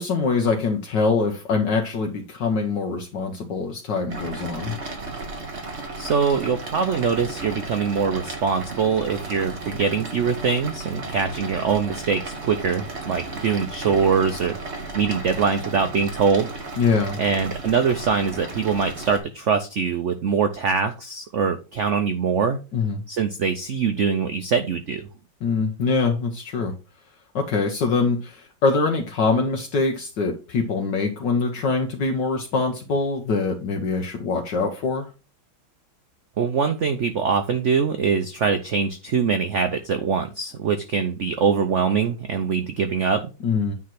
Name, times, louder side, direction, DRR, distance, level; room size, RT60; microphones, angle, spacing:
voice 1, 0.0-4.8 16.8-17.2 22.7-23.0 25.4-26.7 27.3-35.1 43.4-43.7, left 4 dB, 65° left, 2 dB, 1.6 m, -24 dB
sound 1, 4.1-19.2, right 3 dB, 35° right, 1.6 m, -34 dB
voice 2, 6.0-14.6 14.9-16.5 17.2-22.6 23.1-25.0 36.4-43.3, right 6 dB, 80° right, 7 dB, 0.6 m, -23 dB
9.4 x 3.2 x 5.9 m, 0.31 s
omnidirectional pair, 2.2 m